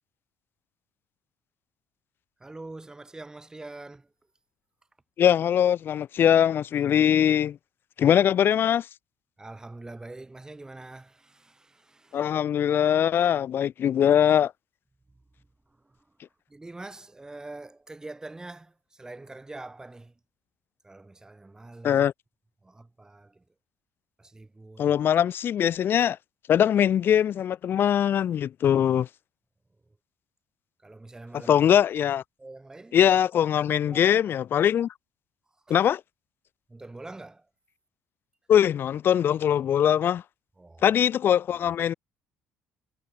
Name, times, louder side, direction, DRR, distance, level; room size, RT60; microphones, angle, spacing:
voice 1, 2.4-4.1 8.0-8.3 9.4-12.3 15.4-16.1 16.5-20.2 20.8-22.1 22.6-23.4 24.2-25.0 30.8-31.7 32.4-33.0 33.8-34.2 35.7-35.9 36.7-37.5 40.6-40.9, right 2 dB, 15° right, 5.3 m, -44 dB
voice 2, 5.2-7.6 8.0-8.9 12.1-14.5 21.8-22.1 24.8-26.2 26.5-29.1 31.5-32.2 32.9-34.9 35.7-36.0 38.5-40.2 40.8-41.9, left 9 dB, 50° left, 0.5 m, -22 dB
cardioid pair, 100°, 5 cm